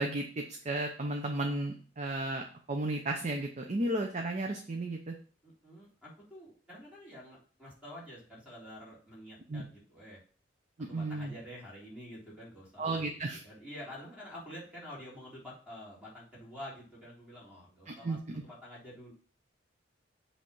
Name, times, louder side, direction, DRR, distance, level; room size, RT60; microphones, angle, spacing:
voice 1, 0.0-5.2 9.5-9.7 10.8-11.3 12.8-13.4 17.9-18.4, right 2 dB, 40° right, 3 dB, 0.7 m, -34 dB
voice 2, 5.4-10.2 10.9-13.0 13.3-18.2 18.4-19.1, left 1 dB, 5° right, -6 dB, 3.4 m, -48 dB
7.7 x 3.4 x 5.5 m, 0.42 s
head